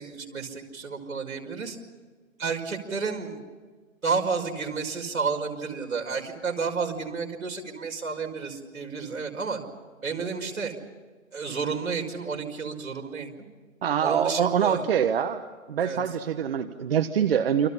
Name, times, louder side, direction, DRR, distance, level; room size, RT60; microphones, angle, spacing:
voice 1, 0.0-1.8 2.4-3.4 4.0-9.6 10.0-10.8 11.3-13.3 14.0-14.8 15.8-16.0, right 5 dB, 80° right, 2 dB, 5.5 m, -31 dB
voice 2, 13.8-15.4 15.7-17.7, right 8 dB, 45° right, 8 dB, 1.3 m, -24 dB
29.0 x 24.0 x 5.8 m, 1.4 s
figure-of-eight pair, 145°, 40 cm